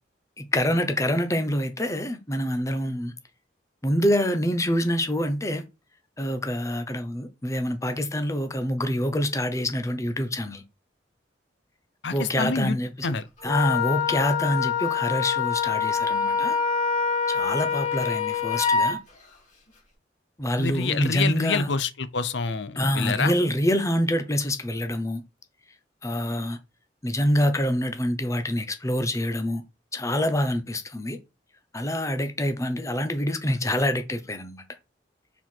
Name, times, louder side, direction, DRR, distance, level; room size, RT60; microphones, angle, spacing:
voice 1, 0.4-3.1 3.8-5.6 6.2-10.6 12.1-16.6 17.3-19.0 20.4-21.7 22.7-25.2 26.0-26.6 27.0-29.6 29.9-31.2 31.7-34.6, equal, 15° left, 0.8 m, -26 dB
voice 2, 12.0-12.8 13.0-13.2 20.6-23.3, left 5 dB, 70° left, 0.7 m, -27 dB
Wind instrument woodwind instrument, 13.4-19.0, left 6 dB, 40° left, 3.4 m, -25 dB
5.6 x 4.6 x 4.5 m
head